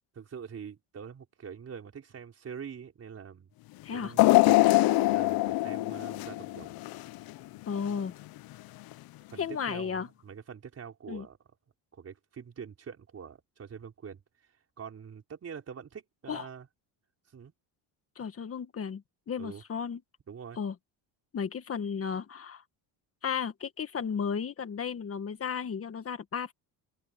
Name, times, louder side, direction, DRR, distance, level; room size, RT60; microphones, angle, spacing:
voice 1, 0.2-3.5 3.9-6.8 9.3-11.4 11.9-14.2 14.8-16.7 17.3-17.5 19.4-19.6 20.3-20.6, right 7 dB, 35° right, 4.9 m, -44 dB
voice 2, 3.8-4.1 7.7-8.2 9.4-10.1 11.1-11.3 16.3-16.5 18.1-20.0 20.6-20.7 21.3-22.6 23.2-26.5, left 7 dB, 30° left, 1.6 m, -34 dB
sound 1, 4.2-7.3 7.8-7.9 8.9-9.0, left 19 dB, 55° left, 0.6 m, -23 dB
cardioid pair, 130°, 43 cm